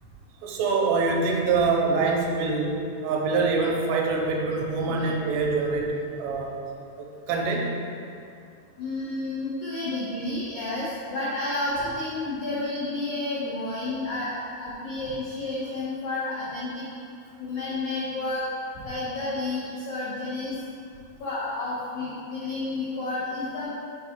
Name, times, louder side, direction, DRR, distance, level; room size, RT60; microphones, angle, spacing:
voice 1, 0.4-6.6 7.0-7.8, right 4 dB, 85° right, 0 dB, 2.8 m, -25 dB
voice 2, 8.8-16.8 17.4-18.4 18.8-20.5 21.2-23.7, left 2 dB, 90° left, -8 dB, 1.7 m, -30 dB
7.9 x 4.7 x 3.6 m, 2.4 s
omnidirectional pair, 4.9 m